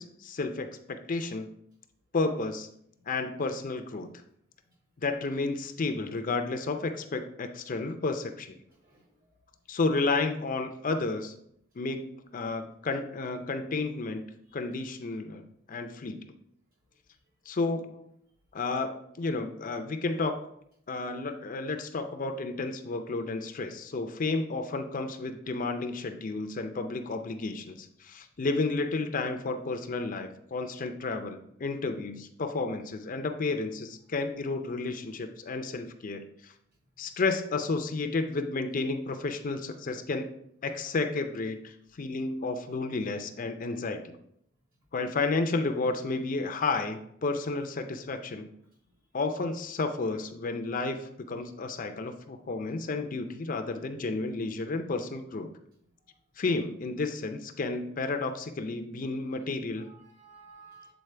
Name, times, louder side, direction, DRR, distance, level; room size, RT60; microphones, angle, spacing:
voice 1, 0.0-1.5 2.1-2.7 3.1-4.1 5.0-8.6 9.7-11.3 11.8-14.2 14.5-16.3 17.5-18.0 18.5-20.4 20.9-36.5 37.0-40.3 40.6-44.2 44.9-48.5 49.1-55.5 56.4-59.9, left 3 dB, 40° left, 6 dB, 0.5 m, -32 dB
voice 2, 8.7-9.1 14.5-14.6 56.1-56.2 59.8-60.9, right 4 dB, 45° right, -1 dB, 1.7 m, -55 dB
8.0 x 4.0 x 3.3 m, 0.72 s
head